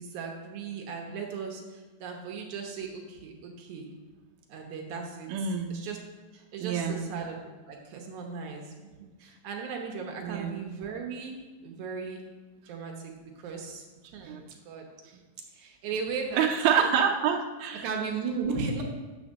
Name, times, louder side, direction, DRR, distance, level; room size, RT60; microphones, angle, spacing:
voice 1, 0.0-3.9 4.5-5.3 5.7-6.0 6.3-11.4 11.6-12.3 12.7-13.1 13.4-13.8 14.1-14.3 14.7-14.9 15.5-16.5 17.8-18.8, right 5 dB, 65° right, 1 dB, 2.1 m, -36 dB
voice 2, 5.3-5.8 6.6-7.1 10.2-10.7 14.2-14.4 16.4-17.9, right 7 dB, 85° right, 1 dB, 2.6 m, -27 dB
8.8 x 4.9 x 6.4 m, 1.3 s
omnidirectional pair, 4.2 m